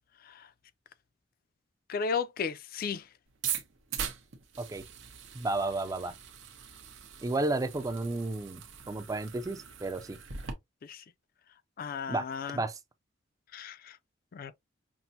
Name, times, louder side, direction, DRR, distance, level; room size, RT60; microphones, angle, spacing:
voice 1, 1.9-3.0 10.8-11.0 11.8-12.6 13.5-14.0 14.3-14.5, left 5 dB, 50° left, 0.4 m, -34 dB
sound 1, 3.3-10.5, right 8 dB, 90° right, 1.0 m, -41 dB
voice 2, 5.3-6.1 7.2-10.2 12.1-12.3 12.5-12.8, right 2 dB, 20° right, 0.4 m, -32 dB
6.0 x 2.0 x 2.7 m
head